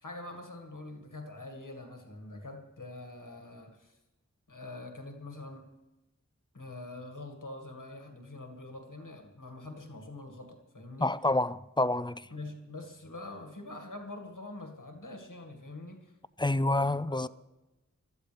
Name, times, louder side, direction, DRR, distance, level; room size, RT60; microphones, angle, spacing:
voice 1, 0.0-4.0 4.5-5.7 6.5-11.2 12.3-16.1 16.4-17.3, left 2 dB, 85° left, 2.0 m, -45 dB
voice 2, 11.0-12.2 16.4-17.3, left 2 dB, 15° left, 0.4 m, -28 dB
23.0 x 13.0 x 3.5 m
wide cardioid pair, 45°, 31 cm